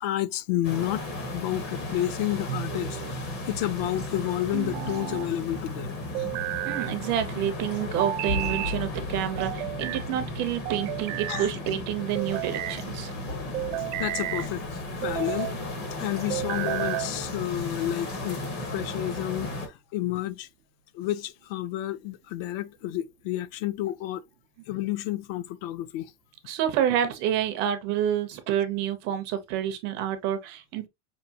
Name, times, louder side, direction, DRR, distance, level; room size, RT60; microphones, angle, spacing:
voice 1, 0.0-6.3 11.3-11.5 14.0-15.6 15.9-18.4 18.7-20.5 20.9-24.2 24.7-26.1, left 14 dB, 55° left, 0.5 m, -31 dB
sound 1, 0.6-19.7, left 1 dB, 30° left, 0.8 m, -35 dB
sound 2, 2.5-3.2 4.5-5.3 6.1-6.9 8.0-8.8 9.4-10.0 10.7-11.5 12.2-12.8 13.5-14.5 15.0-15.5 16.3-17.1, right 18 dB, 80° right, 0.5 m, -32 dB
voice 2, 6.6-13.1 26.5-30.9, right 10 dB, 30° right, 0.4 m, -28 dB
sound 3, 8.3-11.0 13.3-15.9 18.3-18.9, left 3 dB, 90° left, 2.1 m, -39 dB
5.4 x 2.6 x 2.6 m
cardioid pair, 180°, 36 cm